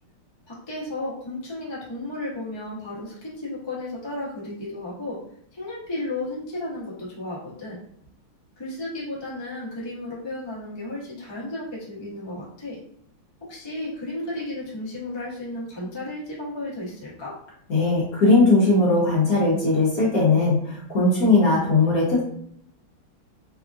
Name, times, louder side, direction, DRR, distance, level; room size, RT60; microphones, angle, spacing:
voice 1, 0.5-5.2 5.5-7.8 8.6-12.8 13.5-17.3, left 2 dB, 40° left, -6 dB, 0.3 m, -33 dB
voice 2, 17.7-22.2, left 2 dB, 60° left, -5 dB, 1.0 m, -19 dB
3.5 x 2.3 x 2.5 m, 0.69 s
omnidirectional pair, 2.3 m